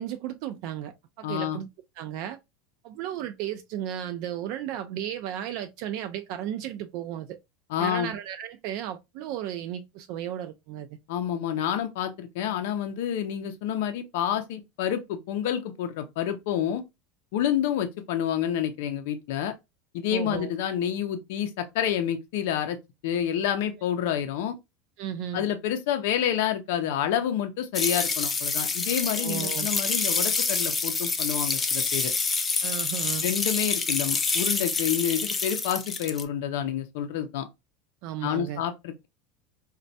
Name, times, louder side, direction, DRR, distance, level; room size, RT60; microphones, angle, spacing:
voice 1, 0.0-1.7 2.0-2.4 2.8-7.4 7.8-10.9 20.1-20.5 25.0-25.4 29.2-29.7 32.6-33.2 38.0-38.6, right 11 dB, 55° right, 0.3 m, -34 dB
voice 2, 1.2-1.6 7.7-8.1 11.1-16.8 17.3-19.5 19.9-22.8 23.0-24.5 25.3-32.1 33.2-37.5 38.2-39.1, left 9 dB, 75° left, 0.4 m, -28 dB
sound 1, 27.7-36.2, left 4 dB, 15° left, 0.4 m, -27 dB
4.1 x 2.1 x 2.6 m
supercardioid pair, 155°, 0 cm